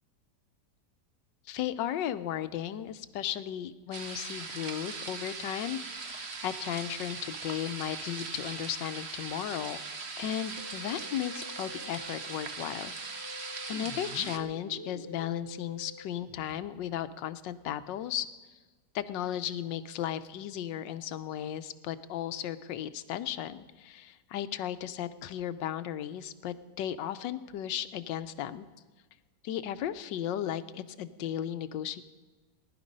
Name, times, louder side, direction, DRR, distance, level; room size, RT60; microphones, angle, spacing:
voice 1, 1.5-9.8 10.2-12.9 13.3-13.4 13.7-18.3 18.9-28.7 29.4-32.0, left 10 dB, 90° left, 12 dB, 1.4 m, -35 dB
sound 1, 3.9-14.4, right 4 dB, 40° right, 1.2 m, -40 dB
Musical instrument, 10.6-16.6, left 2 dB, 20° left, 0.5 m, -48 dB
19.0 x 11.5 x 5.3 m, 1.3 s
omnidirectional pair, 1.9 m